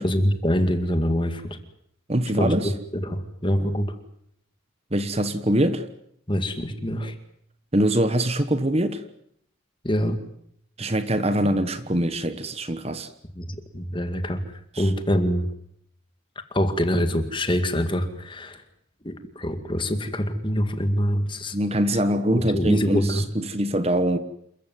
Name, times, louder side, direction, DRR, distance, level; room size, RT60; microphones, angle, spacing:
voice 1, 0.0-1.6 2.4-4.0 6.3-7.2 9.8-10.2 13.4-15.5 16.5-18.6 19.0-21.6 21.9-22.0 22.3-23.3, equal, 25° left, 2.1 m, -25 dB
voice 2, 2.1-2.7 4.9-5.9 7.7-9.0 10.8-13.1 21.5-24.2, right 1 dB, 30° right, 1.3 m, -23 dB
28.0 x 15.0 x 9.5 m
head